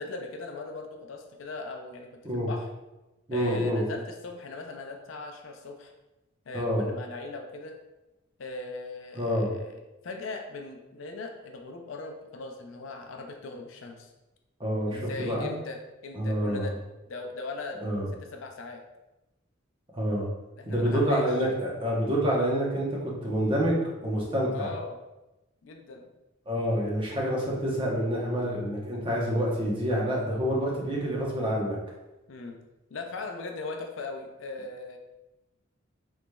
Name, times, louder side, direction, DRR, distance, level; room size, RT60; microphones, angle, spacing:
voice 1, 0.0-2.7 3.3-5.9 6.5-7.8 8.4-14.1 14.8-16.7 17.1-17.8 18.3-18.8 20.6-21.2 24.5-25.0 25.6-26.1 32.3-32.6 32.9-35.0, left 3 dB, 70° left, 4 dB, 0.5 m, -39 dB
voice 2, 3.3-3.8 6.5-6.9 9.1-9.5 14.6-15.5 16.1-16.7 17.8-18.1 19.9-20.3 20.7-24.7 26.5-31.8, equal, 25° right, -4 dB, 0.9 m, -27 dB
4.0 x 3.2 x 2.2 m, 1.0 s
head